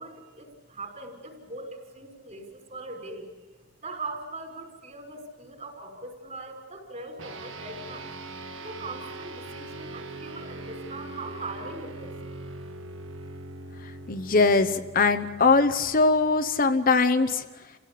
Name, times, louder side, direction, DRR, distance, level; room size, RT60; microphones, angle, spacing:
voice 1, 0.0-3.3 3.8-8.1 8.6-12.2, right 2 dB, 40° right, 2 dB, 5.7 m, -40 dB
sound 1, 7.2-16.9, right 2 dB, 85° right, 1.7 m, -41 dB
voice 2, 14.1-17.4, left 3 dB, 45° left, 9 dB, 1.0 m, -21 dB
28.5 x 17.0 x 8.6 m, 1.3 s
head